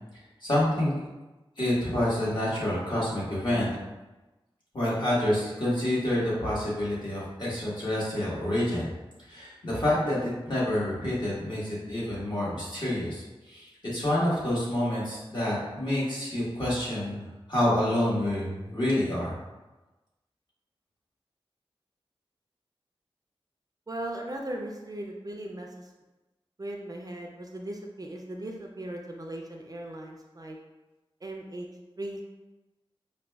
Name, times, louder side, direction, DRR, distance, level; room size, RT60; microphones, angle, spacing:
voice 1, 0.4-1.0 1.6-3.7 4.7-8.8 9.3-17.2 17.5-19.4, left 1 dB, 50° left, -8 dB, 1.4 m, -28 dB
voice 2, 23.9-25.7 26.6-30.6 31.2-31.7 32.0-32.2, right 1 dB, 40° right, 1 dB, 0.4 m, -38 dB
4.9 x 2.2 x 2.3 m, 1.1 s
wide cardioid pair, 75°, 10 cm